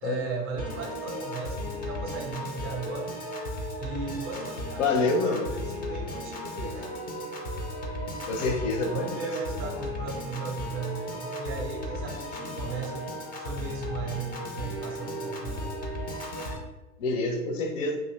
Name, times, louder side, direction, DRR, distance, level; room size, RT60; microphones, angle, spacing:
voice 1, 0.0-3.2 3.8-6.9 8.9-13.1 13.4-15.7, right 5 dB, 30° right, 2 dB, 0.6 m, -36 dB
Piano / Organ, 0.6-16.6, left 1 dB, 20° left, 0.4 m, -35 dB
voice 2, 4.8-5.5 8.3-9.3 9.7-9.8 17.0-18.0, left 3 dB, 55° left, 4 dB, 0.7 m, -27 dB
2.6 x 2.5 x 3.0 m, 1.1 s
figure-of-eight pair, 85°, 44 cm